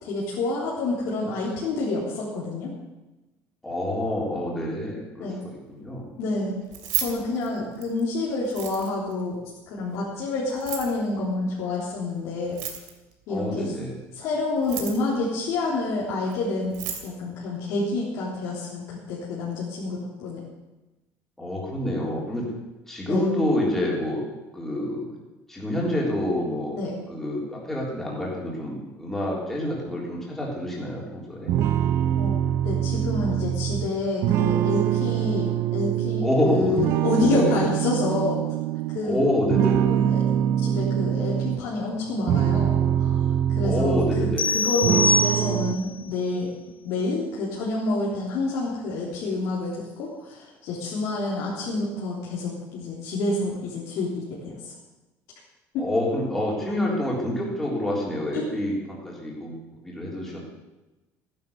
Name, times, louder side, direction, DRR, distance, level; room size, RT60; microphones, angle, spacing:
voice 1, 0.0-2.7 5.2-5.4 6.2-6.6 7.0-9.4 9.7-12.5 13.3-13.7 14.1-16.8 17.0-20.4 23.1-23.3 26.7-26.9 32.2-32.4 32.6-35.5 35.7-38.4 38.9-39.2 39.8-40.2 40.6-43.2 43.5-46.5 46.8-54.7 55.7-55.8 58.3-58.4, left 2 dB, 65° left, -6 dB, 3.5 m, -28 dB
voice 2, 3.6-6.1 13.3-14.0 21.4-22.4 22.9-24.2 24.5-25.1 25.5-26.8 27.1-31.5 36.2-36.8 37.2-37.6 39.0-40.0 43.6-44.5 55.8-60.4, left 1 dB, 5° left, -4 dB, 3.7 m, -27 dB
Keys jangling, 6.6-8.0 8.4-9.1 10.5-11.0 12.4-13.1 14.5-15.2 16.3-16.4 16.6-17.1, right 10 dB, 85° right, 2.8 m, -32 dB
sound 1, 31.5-36.4 36.8-39.1 39.5-41.6 42.1-44.5 44.8-45.8, right 11 dB, 45° right, 0.5 m, -24 dB
sound 2, 44.4-45.9, left 2 dB, 30° left, 1.6 m, -23 dB
15.0 x 11.0 x 6.9 m, 1.1 s
cardioid pair, 180°, 6 cm